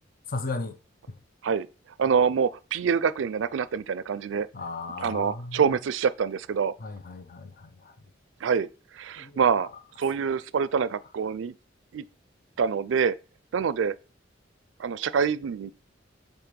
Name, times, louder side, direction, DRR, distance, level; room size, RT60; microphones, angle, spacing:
voice 1, 0.3-0.8 1.1-1.2 4.5-5.8 6.8-8.0 9.2-9.7 10.2-10.4, left 3 dB, 50° left, 0.6 m, -36 dB
voice 2, 2.0-4.5 5.0-6.7 8.4-8.7 9.0-9.7 10.0-11.5 11.9-12.0 12.6-13.1 13.5-14.0 14.8-15.7, right 6 dB, 80° right, 0.4 m, -25 dB
4.6 x 4.2 x 5.1 m
head